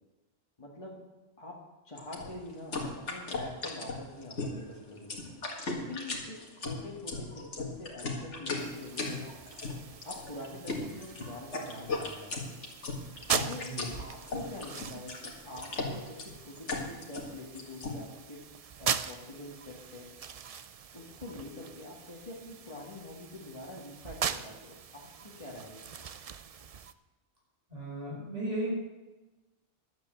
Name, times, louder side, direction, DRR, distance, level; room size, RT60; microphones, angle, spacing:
voice 1, 0.6-1.0 1.4-5.2 5.7-9.4 10.0-12.6 13.5-18.4 18.8-20.1 20.9-25.8, left 2 dB, 30° left, -3 dB, 1.8 m, -45 dB
sound 1, 2.0-18.0, left 3 dB, 80° left, 2.2 m, -37 dB
sound 2, 8.6-26.9, right 7 dB, 50° right, 0.4 m, -40 dB
voice 2, 13.6-13.9 27.7-28.7, right 1 dB, 35° right, -5 dB, 5.8 m, -36 dB
12.0 x 8.2 x 7.7 m, 1.1 s
omnidirectional pair, 1.2 m